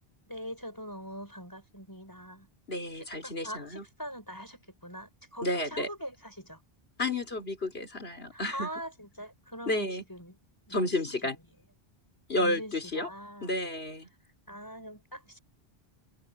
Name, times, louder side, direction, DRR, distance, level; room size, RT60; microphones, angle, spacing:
voice 1, 0.3-2.5 3.2-6.6 8.3-10.3 10.7-10.9 12.4-13.5 14.5-15.4, equal, 20° left, 5.1 m, -42 dB
voice 2, 2.7-3.8 5.4-5.9 7.0-8.7 9.7-10.0 10.7-11.4 12.3-13.1 13.4-14.1, left 2 dB, 75° left, 4.7 m, -31 dB
omnidirectional pair, 1.1 m